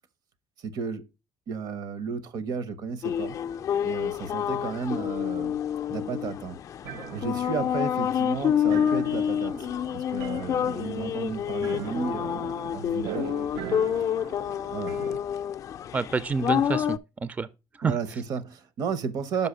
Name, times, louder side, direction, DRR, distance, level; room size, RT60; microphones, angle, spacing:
voice 1, 0.6-1.0 1.5-3.4 3.8-5.6 5.9-6.6 7.1-13.8 14.7-15.0 17.8-19.5, right 5 dB, 65° right, 0.9 m, -33 dB
sound 1, 3.0-17.0, left 9 dB, 50° left, 0.3 m, -28 dB
sound 2, 6.8-15.2, right 10 dB, 90° right, 0.5 m, -41 dB
voice 2, 15.9-17.5 17.7-18.2, right 4 dB, 20° right, 0.4 m, -29 dB
5.5 x 5.1 x 4.9 m
cardioid pair, 100°, 7 cm